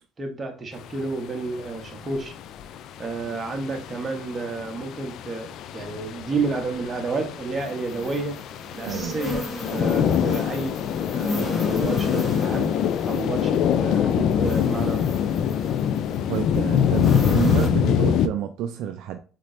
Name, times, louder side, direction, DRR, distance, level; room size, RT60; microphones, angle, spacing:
voice 1, 0.2-2.3 3.0-5.5 5.7-8.4 8.7-10.8 11.1-12.7 13.0-15.2, right 3 dB, 30° right, 1.3 m, -30 dB
sound 1, 0.8-18.3, left 8 dB, 65° left, 0.4 m, -25 dB
sound 2, 7.6-17.7, left 1 dB, 25° left, 1.4 m, -34 dB
voice 2, 8.9-9.5 9.8-10.1 16.2-19.2, right 9 dB, 70° right, 0.4 m, -29 dB
4.1 x 3.9 x 3.2 m
supercardioid pair, 85°, 0 cm